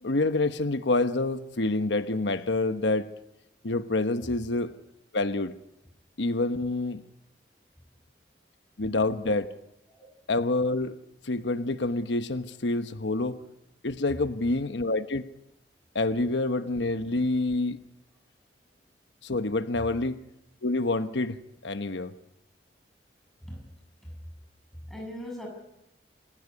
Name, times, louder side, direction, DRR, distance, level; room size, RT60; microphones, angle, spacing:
voice 1, 0.0-3.1 3.6-4.7 5.1-5.5 6.2-7.0 8.8-9.5 10.3-11.0 11.2-13.4 13.8-15.2 15.9-17.8 19.2-20.2 20.6-22.1, left 2 dB, 90° left, 10 dB, 1.1 m, -27 dB
voice 2, 24.7-25.5, equal, ahead, 0 dB, 7.1 m, -40 dB
27.5 x 16.0 x 9.8 m, 0.89 s
head